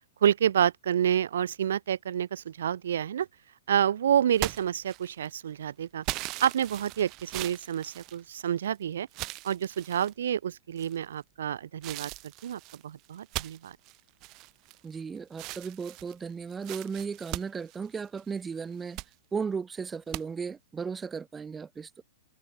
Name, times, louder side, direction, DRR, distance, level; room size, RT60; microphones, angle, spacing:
voice 1, 0.2-3.3 3.7-6.0 6.4-9.1 9.4-12.1 12.4-13.8, right 9 dB, 80° right, 0.9 m, -28 dB
sound 1, 4.3-5.4 6.0-8.7 9.1-10.1 10.8-11.2 11.8-15.0 15.3-18.3 18.7-19.1 20.1-20.2, right 23 dB, 30° right, 1.5 m, -39 dB
voice 2, 14.8-19.0 19.3-22.0, right 5 dB, 10° right, 0.9 m, -35 dB
open air
supercardioid pair, 170°, 0 cm